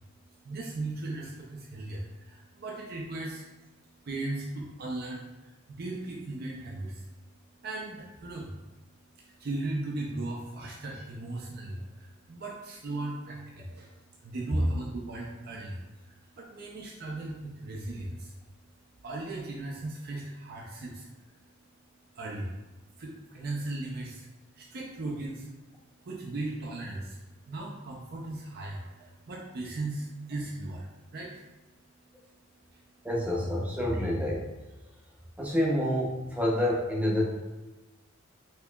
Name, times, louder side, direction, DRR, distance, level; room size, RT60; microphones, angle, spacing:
voice 1, 0.4-3.5 4.0-7.1 7.6-8.5 9.2-18.3 19.0-21.3 22.1-22.5 23.0-25.5 26.0-27.2 27.5-31.4 32.7-32.8, right 2 dB, 50° right, -2 dB, 0.4 m, -37 dB
voice 2, 33.0-34.5 35.4-37.2, left 1 dB, 5° right, -4 dB, 0.6 m, -27 dB
4.4 x 2.8 x 2.2 m, 1.1 s
head